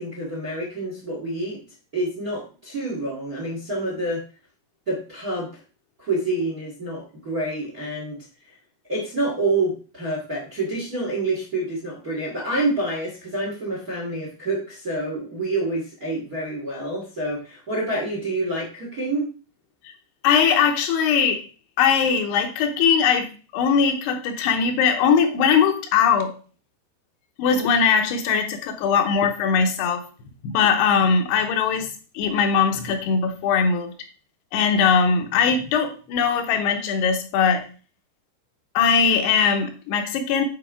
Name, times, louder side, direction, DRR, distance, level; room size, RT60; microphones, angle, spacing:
voice 1, 0.0-1.6 1.9-4.2 4.9-5.6 6.0-8.2 8.9-19.3, right 2 dB, 45° right, -1 dB, 1.1 m, -27 dB
voice 2, 20.2-21.4 21.8-23.3 23.5-26.3 27.4-30.0 30.4-33.9 34.5-37.6 38.7-40.4, left 6 dB, 80° left, 4 dB, 2.9 m, -20 dB
8.9 x 4.6 x 3.6 m, 0.37 s
omnidirectional pair, 4.8 m